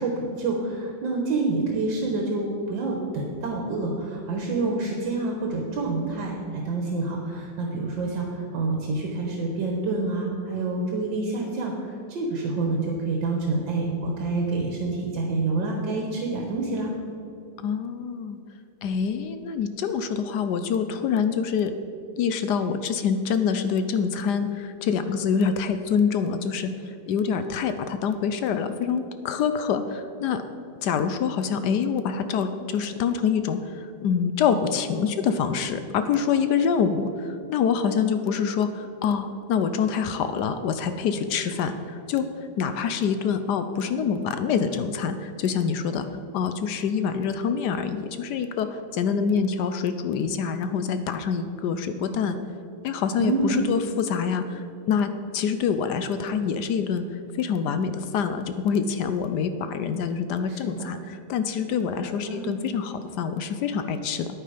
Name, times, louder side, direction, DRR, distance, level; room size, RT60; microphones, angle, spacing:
voice 1, 0.0-16.9 53.2-53.7 60.5-60.9 62.2-62.5, right 3 dB, 80° right, 0 dB, 1.9 m, -27 dB
voice 2, 17.6-18.4 18.8-21.8 22.2-30.4 30.8-42.3 42.6-46.1 46.3-52.4 52.8-64.3, left 6 dB, 70° left, 9 dB, 1.1 m, -26 dB
9.8 x 9.1 x 5.0 m, 2.6 s
omnidirectional pair, 2.0 m